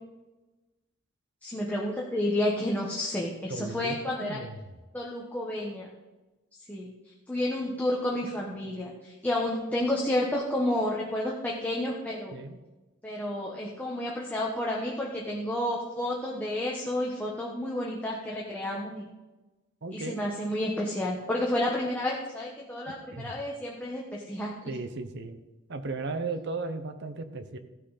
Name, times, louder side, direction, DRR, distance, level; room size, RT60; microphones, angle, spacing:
voice 1, 1.4-4.4 4.9-5.9 6.7-6.9 7.3-12.4 13.0-19.1 19.9-24.7, left 1 dB, 10° left, -3 dB, 1.2 m, -30 dB
voice 2, 3.5-4.6 12.3-12.6 19.8-20.2 23.1-23.3 24.7-25.4 25.7-27.6, right 3 dB, 60° right, 9 dB, 1.0 m, -36 dB
15.5 x 6.4 x 4.1 m, 1.1 s
head